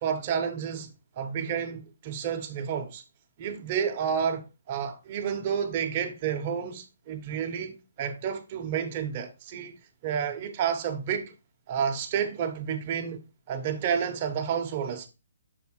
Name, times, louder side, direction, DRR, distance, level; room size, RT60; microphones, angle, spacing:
voice 1, 0.0-0.9 1.2-3.0 3.4-9.8 10.0-11.3 11.7-13.2 13.5-15.1, right 7 dB, 35° right, 1.2 m, -30 dB
7.0 x 3.5 x 4.6 m
hypercardioid pair, 150°, 0 cm